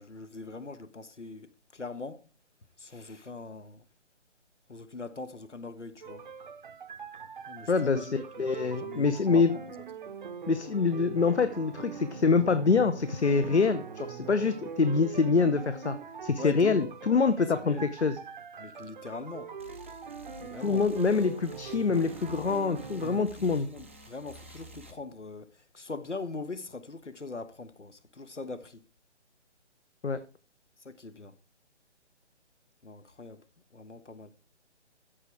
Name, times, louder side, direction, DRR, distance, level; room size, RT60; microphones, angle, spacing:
voice 1, 0.0-2.2 2.8-3.8 4.7-6.2 7.5-9.7 16.4-16.8 17.5-17.9 18.6-19.5 20.4-20.9 23.1-28.8 30.8-31.4 32.8-33.4 33.7-34.3, left 3 dB, 85° left, 1.2 m, -42 dB
sound 1, 6.0-23.2, right 6 dB, 45° right, 0.8 m, -42 dB
voice 2, 7.7-8.1 8.4-9.6 10.5-16.0 16.2-18.2 20.6-23.7 30.0-30.2, left 4 dB, 70° left, 0.9 m, -25 dB
sound 2, 19.6-24.9, right 1 dB, 10° right, 0.5 m, -51 dB
14.0 x 5.0 x 4.5 m
figure-of-eight pair, 145°, 35 cm